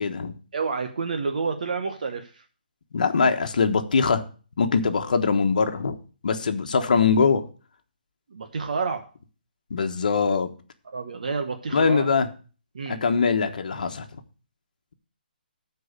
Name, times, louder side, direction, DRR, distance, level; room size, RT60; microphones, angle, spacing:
voice 1, 0.0-0.3 2.9-4.2 4.6-6.0 6.2-7.4 9.7-10.5 11.7-12.3 12.9-14.1, left 5 dB, 55° left, 7 dB, 1.3 m, -22 dB
voice 2, 0.5-2.3 8.3-9.0 10.9-12.1 12.7-13.0, right 4 dB, 55° right, 6 dB, 1.1 m, -29 dB
13.5 x 4.7 x 6.7 m, 0.38 s
hypercardioid pair, 175°, 5 cm